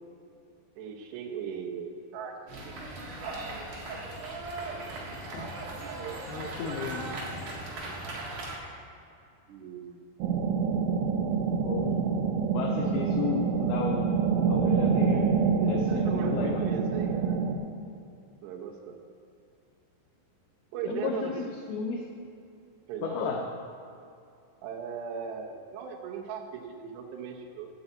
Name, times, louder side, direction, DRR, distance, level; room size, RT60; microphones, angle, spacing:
voice 1, 0.8-2.4 2.6-2.7 5.4-7.2 9.5-10.0 15.6-17.5 18.4-19.0 20.7-21.3 22.9-23.2 24.6-27.7, right 7 dB, 75° right, 0 dB, 2.9 m, -38 dB
sound 1, 2.5-8.6, right 2 dB, 55° right, 2.7 m, -38 dB
voice 2, 6.3-7.1 11.6-12.1 12.5-15.2 15.7-16.6 20.9-22.1 23.0-23.4, left 5 dB, 85° left, 1 dB, 2.2 m, -33 dB
sound 2, 10.2-17.6, right 5 dB, 90° right, 3.3 m, -26 dB
8.9 x 7.2 x 8.0 m, 2.5 s
omnidirectional pair, 5.4 m